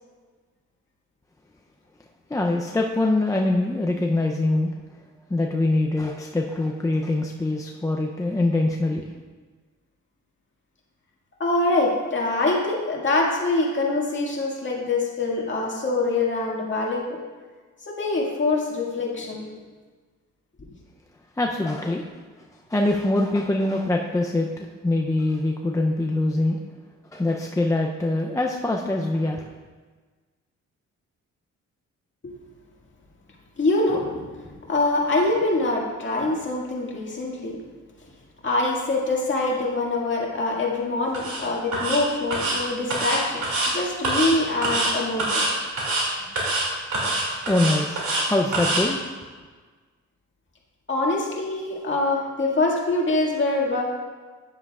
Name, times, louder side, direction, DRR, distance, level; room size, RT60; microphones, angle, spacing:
voice 1, 2.3-4.7 5.3-9.0 21.4-22.1 22.7-26.6 27.1-29.5 47.0-47.2 47.5-49.0, left 2 dB, 10° left, 1 dB, 0.5 m, -24 dB
voice 2, 11.4-17.2 17.9-19.5 32.2-32.3 33.6-37.6 38.4-45.4 47.4-47.5 50.9-53.9, left 2 dB, 40° left, -3 dB, 2.0 m, -24 dB
sound 1, 41.1-41.4 41.7-42.0 42.3-42.6 42.9-43.7 44.0-44.3 44.6-44.9 45.2-45.5 45.8-46.0 46.4-46.6 46.9-48.2 48.5-48.8, right 2 dB, 75° right, 2.5 m, -24 dB
9.8 x 7.6 x 2.4 m, 1.4 s
cardioid pair, 80°, 30 cm